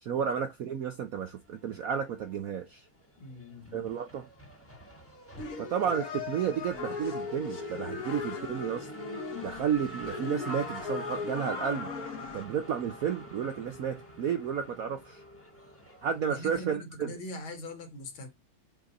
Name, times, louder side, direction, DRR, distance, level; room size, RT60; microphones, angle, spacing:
voice 1, 0.0-2.9 3.7-4.3 5.6-8.9 9.4-11.9 12.3-15.2 16.0-17.2, right 8 dB, 70° right, 0.8 m, -32 dB
Race car auto racing / Accelerating revving vroom, 1.5-2.5 2.8-16.5, equal, 10° left, 1.1 m, -47 dB
voice 2, 3.2-3.9 16.2-18.3, left 1 dB, 80° left, 2.5 m, -42 dB
sound 1, 5.4-12.4, left 5 dB, 50° left, 1.4 m, -38 dB
6.1 x 4.2 x 4.1 m
omnidirectional pair, 2.2 m